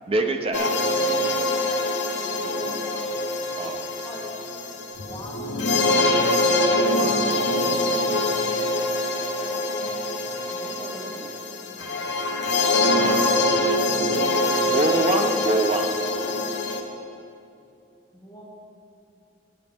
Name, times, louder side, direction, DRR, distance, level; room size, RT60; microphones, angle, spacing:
voice 1, 0.1-0.8 3.6-3.8 7.0-7.2 13.0-13.3 14.7-15.9, right 1 dB, 35° right, 5 dB, 0.6 m, -25 dB
sound 1, 0.5-16.8, left 2 dB, 85° left, 0.9 m, -24 dB
voice 2, 2.4-3.2 4.0-4.3 5.0-6.5 6.8-7.9 9.0-9.9 10.4-12.1 18.1-18.4, equal, 15° left, -6 dB, 1.9 m, -43 dB
11.0 x 10.0 x 3.5 m, 2.6 s
head